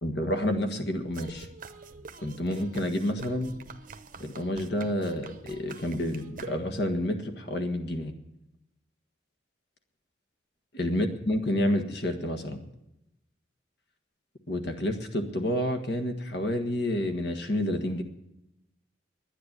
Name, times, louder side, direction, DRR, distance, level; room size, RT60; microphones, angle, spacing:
voice 1, 0.0-1.5 2.2-3.5 4.2-8.1 10.7-12.6 14.5-18.0, left 1 dB, 60° left, 6 dB, 1.6 m, -29 dB
sound 1, 1.1-7.0, right 3 dB, 45° right, 0.8 m, -46 dB
10.5 x 10.0 x 9.7 m, 0.87 s
head